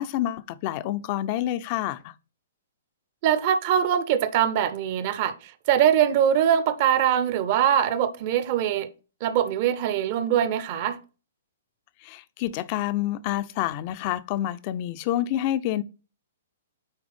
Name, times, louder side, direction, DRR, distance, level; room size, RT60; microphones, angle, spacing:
voice 1, 0.0-2.1 12.0-15.8, left 13 dB, 40° left, 0.5 m, -28 dB
voice 2, 3.2-8.9 9.2-11.0, right 9 dB, 45° right, 0.7 m, -22 dB
9.0 x 3.2 x 3.4 m
hypercardioid pair, 125°, 0 cm